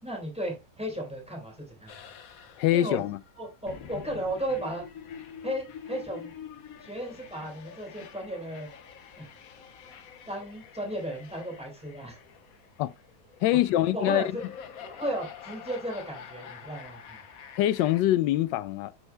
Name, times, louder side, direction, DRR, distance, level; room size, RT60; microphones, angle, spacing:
voice 1, 0.0-2.0 2.7-3.0 3.4-4.9 5.4-6.3 6.8-8.7 9.2-9.3 9.9-10.0 10.3-12.2 13.7-14.3 14.8-17.2, right 1 dB, 5° right, 3.9 m, -35 dB
sound 1, 1.9-18.0, left 8 dB, 60° left, 1.1 m, -46 dB
voice 2, 2.6-3.2 12.8-12.9 13.4-14.2 17.6-18.9, left 14 dB, 90° left, 1.3 m, -24 dB
10.5 x 4.5 x 2.2 m
omnidirectional pair, 1.9 m